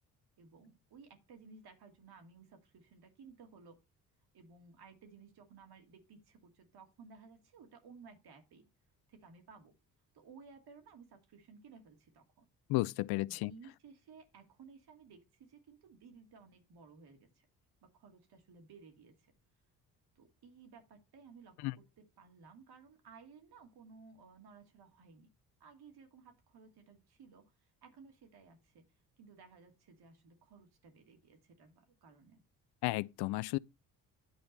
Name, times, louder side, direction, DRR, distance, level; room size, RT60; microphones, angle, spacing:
voice 1, 0.4-3.8 4.3-8.7 9.1-9.7 10.1-12.5 13.2-17.5 17.8-19.3 20.2-25.3 25.6-28.9 29.2-32.4, right 5 dB, 55° right, 2.5 m, -58 dB
voice 2, 12.7-13.5 21.6-21.7 32.8-33.6, left 20 dB, 60° left, 0.5 m, -33 dB
10.0 x 4.4 x 5.4 m
hypercardioid pair, 50°, 45 cm